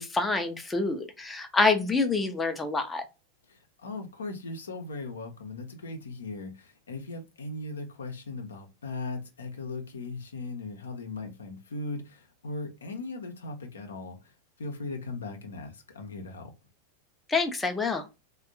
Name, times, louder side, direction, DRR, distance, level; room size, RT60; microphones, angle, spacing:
voice 1, 0.0-3.0 17.3-18.0, left 3 dB, 10° left, 0.5 m, -27 dB
voice 2, 3.5-16.5, left 3 dB, 70° left, 0.6 m, -38 dB
3.3 x 2.2 x 2.6 m
figure-of-eight pair, 90°, 0 cm